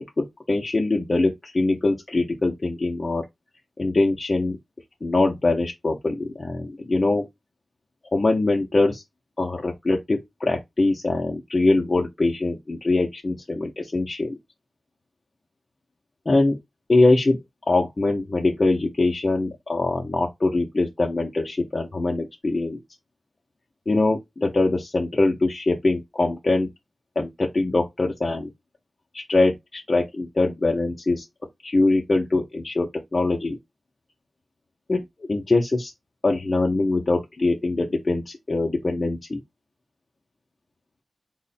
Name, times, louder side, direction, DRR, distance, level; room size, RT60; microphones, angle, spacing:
voice 1, 0.2-3.2 3.8-4.6 5.0-7.3 8.1-9.0 9.4-14.4 16.3-16.6 16.9-22.8 23.9-26.7 27.2-28.5 29.1-31.2 31.6-33.6 34.9-35.9 36.2-39.4, left 2 dB, 45° left, 0.6 m, -23 dB
3.7 x 2.1 x 4.0 m
wide cardioid pair, 75°, 0 cm